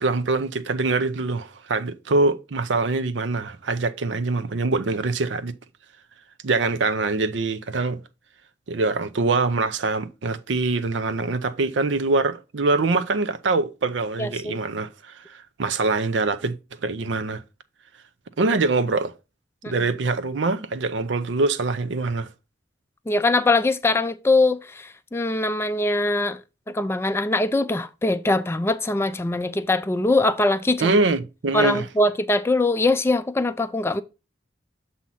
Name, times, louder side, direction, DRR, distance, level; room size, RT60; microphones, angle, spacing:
voice 1, 0.0-5.5 6.4-8.0 8.7-16.6 16.8-17.4 18.4-19.1 19.7-22.3 30.8-31.9, right 3 dB, 90° right, 0.6 m, -24 dB
voice 2, 14.2-14.5 19.6-19.7 23.1-26.4 26.7-31.0 31.5-34.0, left 2 dB, 15° left, 0.3 m, -22 dB
7.3 x 2.8 x 5.6 m
head